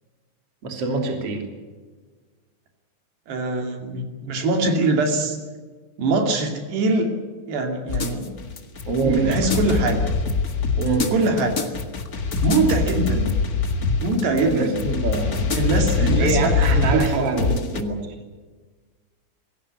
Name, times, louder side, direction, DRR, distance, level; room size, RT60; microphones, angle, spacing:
voice 1, 0.6-1.5 8.9-9.5 10.8-11.2 14.5-15.5 16.0-18.1, right 3 dB, 35° right, 3 dB, 3.6 m, -25 dB
voice 2, 3.3-5.4 6.0-7.1 7.5-8.3 9.0-10.0 11.1-11.7 12.4-13.3 14.0-14.8 15.5-17.3, right 2 dB, 75° right, 4 dB, 4.6 m, -23 dB
sound 1, 7.9-17.8, left 4 dB, 65° left, 0.8 m, -24 dB
23.5 x 16.5 x 9.8 m, 1.4 s
omnidirectional pair, 4.9 m